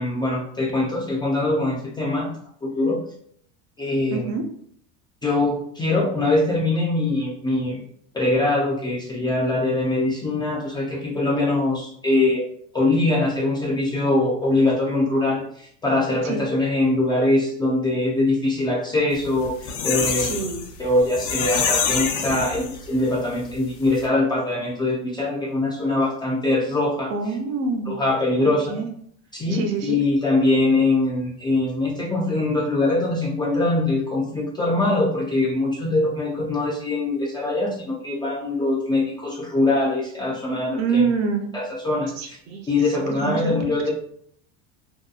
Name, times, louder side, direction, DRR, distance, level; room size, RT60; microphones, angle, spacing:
voice 1, 0.0-2.3 2.6-3.0 3.8-4.3 5.2-7.8 8.1-12.5 12.7-20.3 20.8-27.1 27.9-28.8 29.3-41.1 41.5-42.4 42.7-43.9, left 2 dB, 15° left, -4 dB, 0.3 m, -22 dB
voice 2, 4.1-4.4 16.2-16.4 20.2-20.7 27.1-28.0 28.4-28.9 29.5-30.0 40.8-41.5 42.2-42.7 43.1-43.8, right 5 dB, 50° right, 4 dB, 0.5 m, -26 dB
sound 1, 19.2-23.1 23.5-23.6 23.8-24.0, left 6 dB, 75° left, 0.6 m, -26 dB
2.7 x 2.2 x 2.3 m, 0.65 s
supercardioid pair, 135°, 33 cm